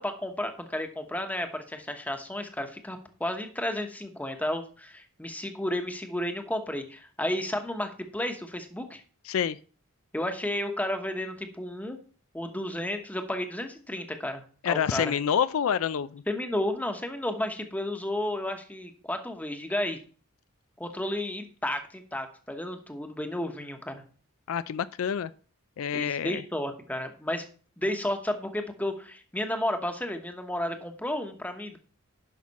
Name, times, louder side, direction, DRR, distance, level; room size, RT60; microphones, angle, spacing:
voice 1, 0.0-9.0 10.1-12.0 12.3-14.4 14.7-15.1 16.3-20.0 20.8-24.0 25.9-27.4 27.8-31.8, left 1 dB, 5° left, 1.0 m, -32 dB
voice 2, 9.3-9.6 14.6-16.2 24.5-25.3 25.8-26.4, left 8 dB, 75° left, 0.4 m, -27 dB
11.0 x 5.7 x 4.1 m
head